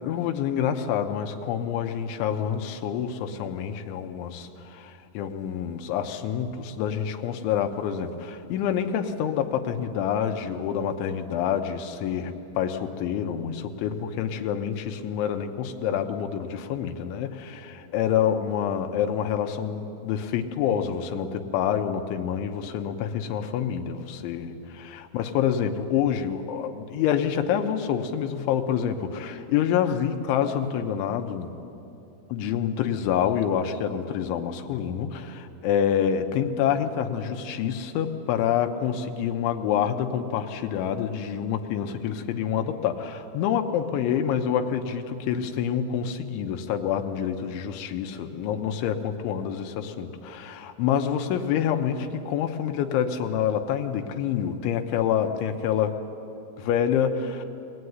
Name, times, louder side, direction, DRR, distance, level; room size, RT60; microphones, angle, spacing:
voice 1, 0.0-31.5 32.3-56.0 56.6-57.5, left 8 dB, 80° left, 6 dB, 3.4 m, -27 dB
22.5 x 19.5 x 9.6 m, 2.8 s
omnidirectional pair, 5.7 m